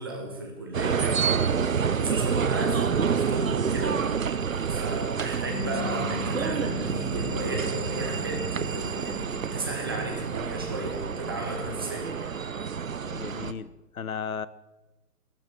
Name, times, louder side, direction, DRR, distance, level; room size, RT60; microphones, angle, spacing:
voice 1, 0.0-4.1 4.7-12.3, right 2 dB, 15° right, 0 dB, 1.2 m, -34 dB
sound 1, 0.7-13.5, right 6 dB, 55° right, 0.7 m, -28 dB
Bass guitar, 5.5-10.2 10.5-11.7, left 8 dB, 45° left, 2.5 m, -40 dB
sound 2, 9.0-11.6, left 1 dB, 10° left, 4.3 m, -51 dB
voice 2, 13.0-14.5, left 6 dB, 60° left, 17 dB, 0.8 m, -35 dB
13.5 x 12.5 x 6.1 m, 1.0 s
hypercardioid pair, 175°, 48 cm